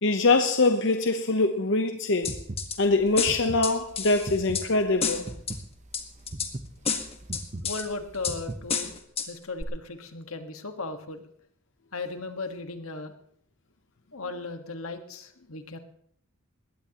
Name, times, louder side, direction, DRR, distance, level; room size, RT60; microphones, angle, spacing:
voice 1, 0.0-2.4 2.8-5.3, left 3 dB, 60° left, 0.9 m, -23 dB
sound 1, 2.2-2.8 3.2-4.7 5.0-5.6 5.9-6.5 6.8-7.8 8.2-8.4 8.7-9.3 9.6-9.7, left 6 dB, 30° left, 1.5 m, -30 dB
sound 2, 2.2-9.0, right 1 dB, 35° right, 0.9 m, -39 dB
voice 2, 7.6-8.9 9.3-11.2 11.9-13.1 14.1-15.8, left 3 dB, 80° left, 1.6 m, -36 dB
21.0 x 17.5 x 3.0 m
head